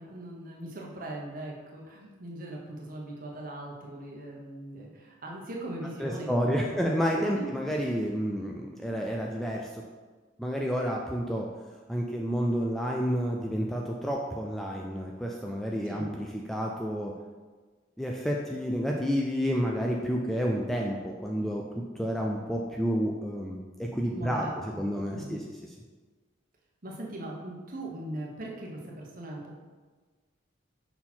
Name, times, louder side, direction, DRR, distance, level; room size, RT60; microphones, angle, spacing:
voice 1, 0.0-7.5 15.8-16.1 24.1-25.4 26.8-29.6, right 1 dB, 45° right, -2 dB, 1.0 m, -40 dB
voice 2, 6.0-9.8 10.4-11.5 11.9-17.1 18.0-24.5 24.8-25.4, equal, ahead, -1 dB, 0.3 m, -30 dB
5.6 x 4.3 x 4.4 m, 1.4 s
head